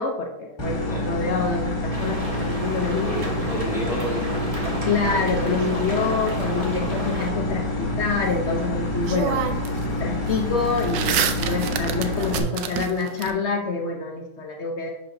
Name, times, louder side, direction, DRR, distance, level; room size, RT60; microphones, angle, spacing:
voice 1, 0.0-3.3 4.9-9.4 10.0-14.9, left 4 dB, 90° left, 1 dB, 0.6 m, -27 dB
sound 1, 0.6-12.4, left 1 dB, 20° left, 1.0 m, -27 dB
sound 2, 1.9-7.3, equal, 20° right, 1.4 m, -33 dB
voice 2, 3.0-4.9, right 1 dB, ahead, -4 dB, 1.4 m, -32 dB
sound 3, 5.0-6.3 8.5-8.6 9.0-9.8 10.1-13.3, right 8 dB, 75° right, 1.2 m, -29 dB
10.5 x 4.9 x 2.6 m, 0.97 s
omnidirectional pair, 2.1 m